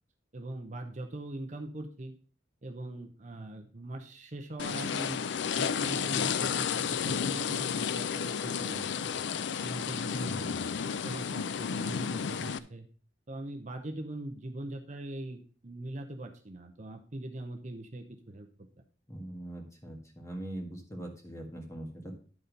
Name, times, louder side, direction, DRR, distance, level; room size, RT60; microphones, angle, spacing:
voice 1, 0.3-2.1 2.6-5.3 5.6-9.1 9.6-10.6 11.0-12.9 13.3-18.5, right 1 dB, 40° right, 4 dB, 0.8 m, -41 dB
sound 1, 4.6-12.6, left 7 dB, 70° left, 0.4 m, -32 dB
voice 2, 10.2-10.7 19.1-22.2, right 1 dB, 15° left, 1 dB, 1.8 m, -42 dB
11.0 x 4.3 x 5.2 m, 0.40 s
head